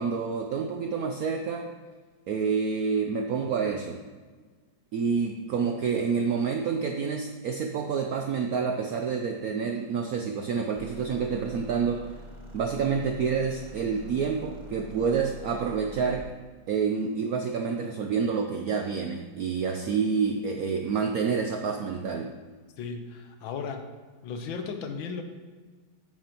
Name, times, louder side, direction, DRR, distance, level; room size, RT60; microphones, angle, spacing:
voice 1, 0.0-1.7 2.3-4.0 4.9-12.0 12.5-16.3 16.7-22.3, right 5 dB, 80° right, 4 dB, 0.8 m, -28 dB
sound 1, 10.7-16.3, equal, 25° right, 1.2 m, -45 dB
voice 2, 22.8-23.8 24.2-25.2, left 5 dB, 75° left, 6 dB, 1.6 m, -35 dB
9.1 x 9.0 x 2.9 m, 1.4 s
omnidirectional pair, 2.2 m